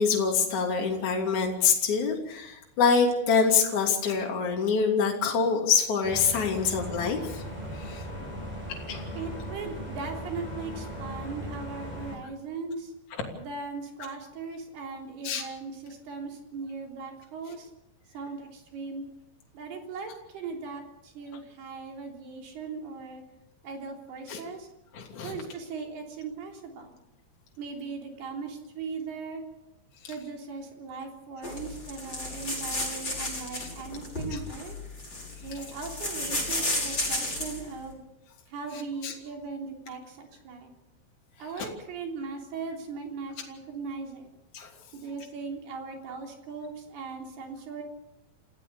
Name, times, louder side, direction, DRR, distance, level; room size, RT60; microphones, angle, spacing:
voice 1, 0.0-7.4 7.9-8.0 8.3-8.5 8.9-9.1 15.2-15.4 24.3-24.4 24.9-25.3 39.0-39.1 44.5-44.7, left 5 dB, 50° left, 0 dB, 4.2 m, -25 dB
sound 1, 6.0-12.2, equal, 10° right, 6.8 m, -38 dB
voice 2, 9.2-12.9 13.3-17.7 18.1-19.1 19.5-23.2 23.6-24.7 25.2-27.0 27.6-29.4 30.1-34.8 35.4-38.0 38.5-40.7 41.4-44.3 44.9-47.8, right 4 dB, 80° right, 2 dB, 5.4 m, -38 dB
sound 2, 31.4-37.6, left 1 dB, 25° left, 6.4 m, -33 dB
28.5 x 16.0 x 7.0 m, 0.89 s
omnidirectional pair, 4.5 m